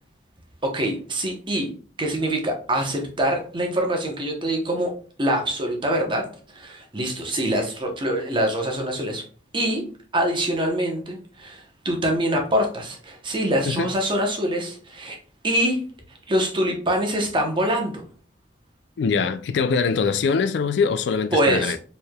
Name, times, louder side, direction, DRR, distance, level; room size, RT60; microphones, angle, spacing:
voice 1, 0.6-1.7 2.0-4.9 5.2-6.3 6.5-9.2 9.5-9.8 10.1-15.2 15.4-15.8 16.3-18.0 21.3-21.7, right 1 dB, 30° right, 0.8 m, -24 dB
voice 2, 19.0-21.8, left 5 dB, 75° left, 0.3 m, -23 dB
4.5 x 3.3 x 2.2 m
head